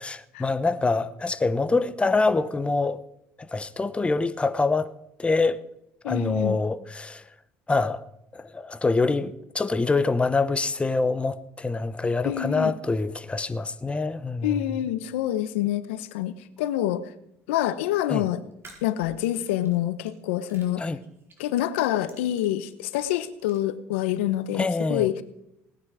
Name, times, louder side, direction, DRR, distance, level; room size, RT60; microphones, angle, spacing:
voice 1, 0.0-3.0 3.4-4.9 5.2-5.6 6.0-7.2 7.7-8.1 8.3-14.6 18.1-18.2 20.8-21.0 24.5-25.1, left 3 dB, 15° left, 0.9 m, -25 dB
voice 2, 6.0-6.6 12.2-12.7 14.4-17.0 17.5-18.4 18.8-20.8 21.4-25.2, left 13 dB, 80° left, 0.9 m, -26 dB
sound 1, 17.7-18.0 18.5-20.1 20.5-21.5 21.9-23.6, right 3 dB, 40° right, 4.4 m, -53 dB
18.5 x 9.7 x 4.9 m
hypercardioid pair, 70°, 7 cm